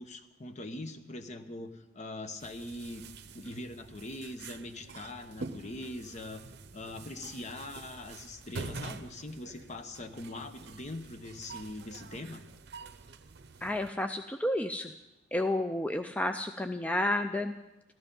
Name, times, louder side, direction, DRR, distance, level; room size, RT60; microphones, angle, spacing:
voice 1, 0.0-3.1 3.3-6.4 6.7-12.4, left 2 dB, 40° left, 8 dB, 0.9 m, -42 dB
sound 1, 2.4-13.9, right 4 dB, 60° right, 0.7 m, -46 dB
voice 2, 13.6-14.9 15.3-17.5, left 1 dB, 10° left, 7 dB, 0.4 m, -31 dB
14.5 x 12.5 x 5.3 m, 0.96 s
head